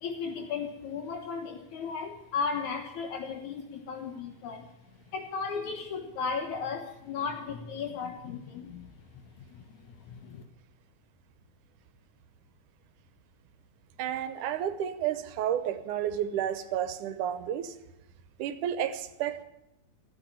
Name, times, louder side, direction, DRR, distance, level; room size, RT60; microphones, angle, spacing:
voice 1, 0.0-4.7 5.1-10.4, left 5 dB, 75° left, 2.7 m, -36 dB
voice 2, 14.0-17.8 18.4-19.4, right 10 dB, 80° right, 2.5 m, -31 dB
15.0 x 9.4 x 10.0 m
omnidirectional pair, 3.5 m